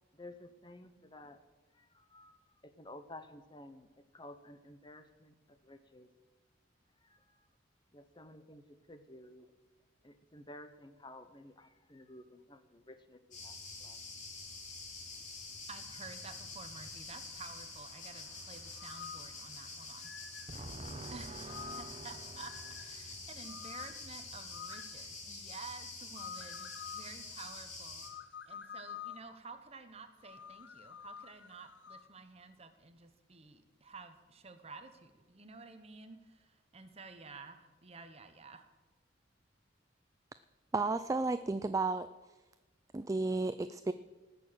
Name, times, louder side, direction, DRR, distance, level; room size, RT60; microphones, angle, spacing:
voice 1, 0.1-1.4 1.7-6.1 7.0-7.5 7.9-9.5 10.0-14.0, left 1 dB, 25° left, 9 dB, 0.9 m, -53 dB
sound 1, 13.3-28.1, left 3 dB, 45° left, 3.0 m, -47 dB
voice 2, 15.7-20.1 20.5-28.1 28.5-38.7, right 3 dB, 35° right, 8 dB, 1.1 m, -50 dB
sound 2, 18.7-19.3 20.0-20.5 21.5-22.0 22.4-22.9 23.4-24.0 24.5-25.0 26.2-27.1 28.0-29.3 30.2-32.1, left 8 dB, 75° left, 0.6 m, -48 dB
voice 3, 40.7-42.1 42.9-43.9, right 3 dB, 20° right, 12 dB, 0.3 m, -32 dB
18.5 x 6.7 x 8.0 m, 1.2 s
head